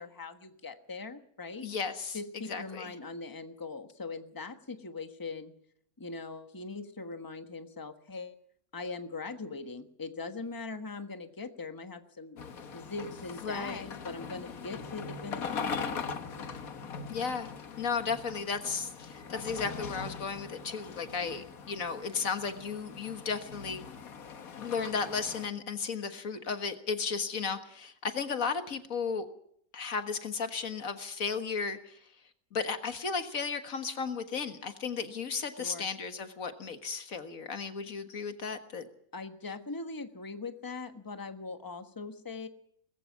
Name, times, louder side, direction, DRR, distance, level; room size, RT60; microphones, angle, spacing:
voice 1, 0.0-1.7 2.1-5.5 6.0-8.3 8.7-12.4 12.7-15.8 21.2-21.4 35.6-35.9 39.1-42.5, left 3 dB, 15° left, 7 dB, 1.3 m, -41 dB
voice 2, 1.6-2.2 2.4-3.0 13.4-13.8 17.1-17.5 17.8-23.8 24.6-29.3 29.7-32.0 32.5-38.9, left 5 dB, 75° left, 8 dB, 1.9 m, -34 dB
sound 1, 12.4-25.5, left 5 dB, 90° left, 1.8 m, -41 dB
20.5 x 15.5 x 8.3 m, 0.68 s
omnidirectional pair, 1.5 m